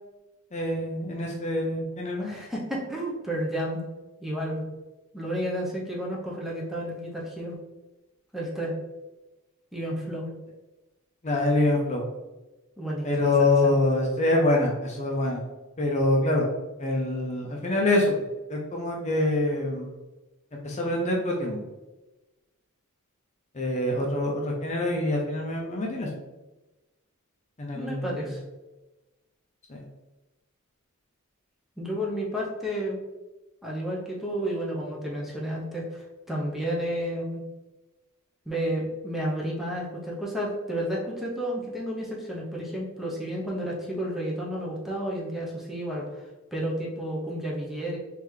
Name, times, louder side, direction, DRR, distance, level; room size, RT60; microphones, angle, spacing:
voice 1, 0.5-2.3 11.2-12.0 13.0-15.4 15.8-16.5 16.8-18.2 18.5-19.9 20.5-21.6 23.5-26.1 27.6-28.1 29.7-29.8, left 2 dB, 30° left, -1 dB, 0.6 m, -25 dB
voice 2, 2.2-3.8 4.2-4.6 5.1-7.6 8.3-8.8 9.7-10.3 12.8-13.7 27.7-28.4 31.8-33.0 33.6-37.4 38.5-46.2 46.5-48.0, equal, ahead, -4 dB, 0.7 m, -31 dB
3.8 x 3.3 x 3.1 m, 1.1 s
head